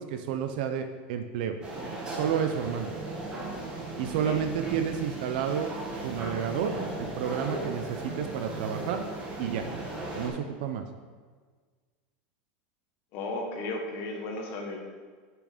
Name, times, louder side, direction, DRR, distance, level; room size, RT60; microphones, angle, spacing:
voice 1, 0.0-1.6 2.1-2.9 4.0-5.7 6.0-9.0 9.4-9.7 10.1-10.8, right 8 dB, 65° right, 7 dB, 0.6 m, -30 dB
sound 1, 1.6-10.3, right 2 dB, 20° right, 1.5 m, -37 dB
voice 2, 4.1-4.4 13.1-14.8, left 2 dB, 45° left, 2 dB, 1.3 m, -35 dB
7.0 x 6.0 x 5.0 m, 1.5 s
supercardioid pair, 160°, 5 cm